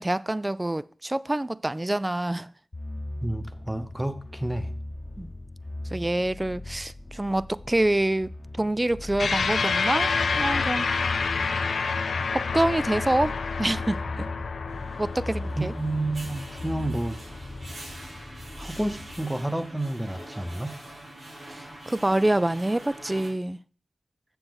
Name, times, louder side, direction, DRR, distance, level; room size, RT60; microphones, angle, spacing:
voice 1, 0.0-2.5 5.2-5.3 5.9-8.3 8.6-10.1 10.4-10.9 12.3-14.3 15.0-15.7 21.5-23.6, right 1 dB, 25° right, 0.3 m, -26 dB
sound 1, 2.7-19.2, left 1 dB, 40° left, 0.9 m, -39 dB
voice 2, 3.2-4.7 15.6-17.2 18.6-20.8, right 1 dB, 5° right, 0.8 m, -30 dB
sound 2, 9.2-17.9, left 5 dB, 90° left, 0.5 m, -28 dB
sound 3, 14.7-23.3, right 1 dB, 85° right, 4.7 m, -44 dB
7.3 x 6.9 x 3.9 m
cardioid pair, 50°, 0 cm